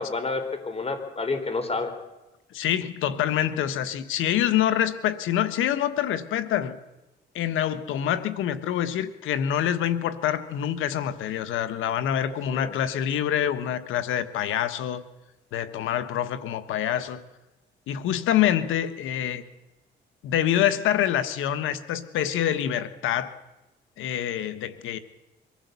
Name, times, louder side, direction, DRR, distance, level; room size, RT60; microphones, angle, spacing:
voice 1, 0.0-1.9 12.5-12.7, left 3 dB, 30° left, 8 dB, 3.9 m, -29 dB
voice 2, 2.5-6.8 7.3-15.0 15.5-17.2 17.9-19.4 20.2-23.4 24.0-25.0, left 10 dB, 85° left, 13 dB, 1.3 m, -26 dB
24.0 x 15.0 x 8.3 m, 1.0 s
cardioid pair, 90°, 20 cm